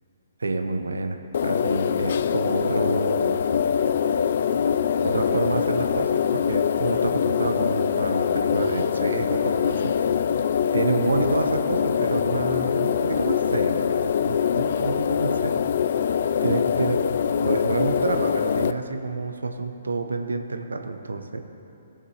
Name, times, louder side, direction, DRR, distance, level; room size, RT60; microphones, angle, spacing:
voice 1, 0.4-3.4 5.0-10.1 10.7-15.6 16.4-21.4, right 3 dB, 85° right, 7 dB, 0.8 m, -28 dB
sound 1, 1.3-18.7, left 7 dB, 60° left, 0.4 m, -23 dB
18.5 x 7.2 x 3.3 m, 2.8 s
hypercardioid pair, 135°, 0 cm